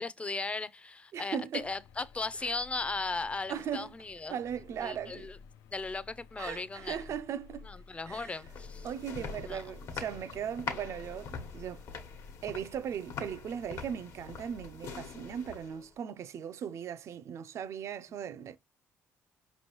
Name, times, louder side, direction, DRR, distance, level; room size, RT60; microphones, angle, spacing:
voice 1, 0.0-4.4 4.8-5.4 5.7-7.0 7.7-8.9 9.4-9.6, left 3 dB, 20° left, 0.5 m, -37 dB
voice 2, 1.1-1.7 2.4-2.5 3.5-3.9 4.3-5.3 6.4-7.7 8.1-8.4 8.8-11.8 12.4-18.6, right 8 dB, 55° right, 0.5 m, -38 dB
sound 1, 1.6-12.7, left 5 dB, 80° left, 0.4 m, -52 dB
sound 2, 8.1-15.9, left 5 dB, 65° left, 1.1 m, -44 dB
5.0 x 3.0 x 3.0 m
cardioid pair, 85°, 6 cm